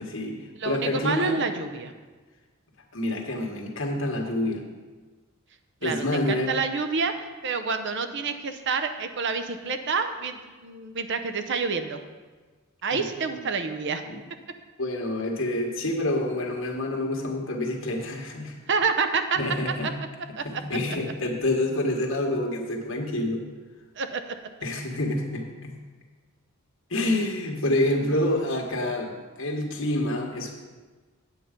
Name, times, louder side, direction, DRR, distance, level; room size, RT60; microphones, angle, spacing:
voice 1, 0.0-0.4 0.6-1.4 2.9-4.6 5.8-6.5 12.9-13.0 14.1-14.2 14.8-18.5 19.4-20.0 20.4-23.4 24.6-25.8 26.9-30.5, left 1 dB, 65° left, 1 dB, 1.6 m, -27 dB
voice 2, 0.5-1.9 5.8-12.0 12.8-14.0 18.7-19.4 19.8-19.9 20.4-20.5 24.0-24.3, right 4 dB, 60° right, 8 dB, 0.8 m, -28 dB
8.9 x 8.3 x 5.2 m, 1.3 s
head